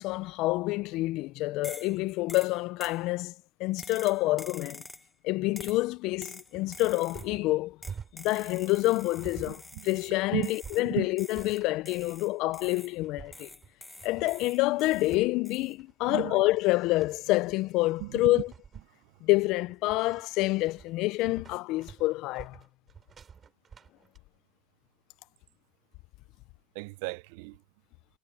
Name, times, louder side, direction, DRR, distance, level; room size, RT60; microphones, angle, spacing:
voice 1, 0.0-3.3 3.6-4.8 5.2-7.8 8.1-13.5 14.0-18.5 19.2-22.6, left 19 dB, 55° left, 0.5 m, -27 dB
sound 1, 1.6-2.0 2.3-3.0 3.8-5.1 5.6-5.8 6.2-7.3 7.8-10.2 10.4-10.9 11.2-13.0 13.3-15.2 15.4-15.7, left 1 dB, 5° left, 1.5 m, -47 dB
sound 2, 5.6-24.2, right 6 dB, 25° right, 7.3 m, -49 dB
voice 2, 9.5-9.9 10.3-10.5 10.8-11.1 16.1-16.4 18.0-18.4 18.9-19.2 26.7-27.6, right 24 dB, 70° right, 0.5 m, -35 dB
sound 3, 13.9-16.2 16.6-20.7, left 11 dB, 35° left, 6.5 m, -68 dB
supercardioid pair, 145°, 0 cm